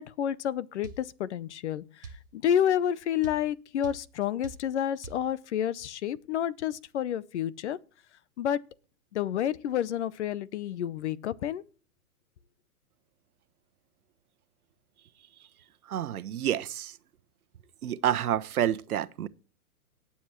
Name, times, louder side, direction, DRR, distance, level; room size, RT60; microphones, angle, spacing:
voice 1, 0.0-7.8 8.4-8.6 9.1-11.6, left 10 dB, 50° left, 0.7 m, -30 dB
sound 1, 0.8-1.0 2.0-2.2 3.2-3.4 3.8-4.0 4.4-4.6 5.0-5.2, right 5 dB, 15° right, 0.4 m, -42 dB
voice 2, 15.8-17.0 17.8-19.3, right 11 dB, 80° right, 1.0 m, -29 dB
18.5 x 7.2 x 3.1 m
hypercardioid pair, 150°, 44 cm